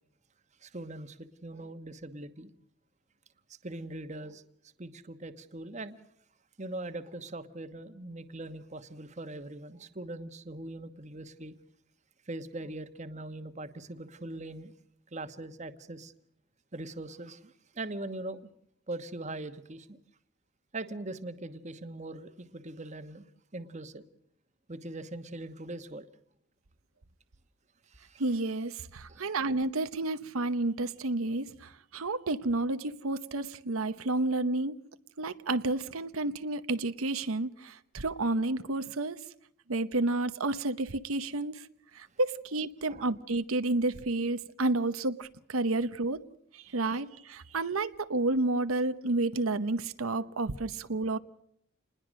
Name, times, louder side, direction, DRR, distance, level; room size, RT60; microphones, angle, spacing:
voice 1, 0.6-2.5 3.5-4.4 4.8-6.0 6.6-11.5 12.3-14.7 15.1-16.1 16.7-18.4 18.9-20.0 20.7-23.2 23.5-24.0 24.7-26.1 27.9-28.2 29.1-29.3 42.9-43.1, right 2 dB, 35° right, 1.2 m, -41 dB
voice 2, 28.2-34.8 35.2-39.2 39.7-41.7 41.9-46.2 46.5-51.2, right 2 dB, 90° right, 0.9 m, -30 dB
27.5 x 20.5 x 6.3 m
head